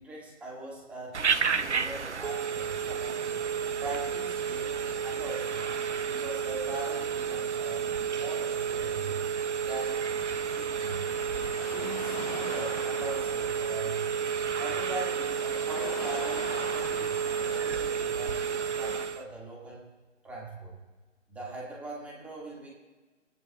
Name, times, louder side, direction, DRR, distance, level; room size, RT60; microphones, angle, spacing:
voice 1, 0.0-3.4 3.8-5.7 6.0-9.2 9.7-10.0 10.6-11.1 11.7-14.1 14.6-19.9 20.2-20.8 21.3-22.7, right 2 dB, 5° right, -4 dB, 1.9 m, -41 dB
Telephone, 1.1-19.2, right 7 dB, 65° right, 1.0 m, -31 dB
sound 1, 9.7-19.0, left 5 dB, 30° left, 1.1 m, -44 dB
30.0 x 10.5 x 2.3 m, 1.2 s
figure-of-eight pair, 150°, 38 cm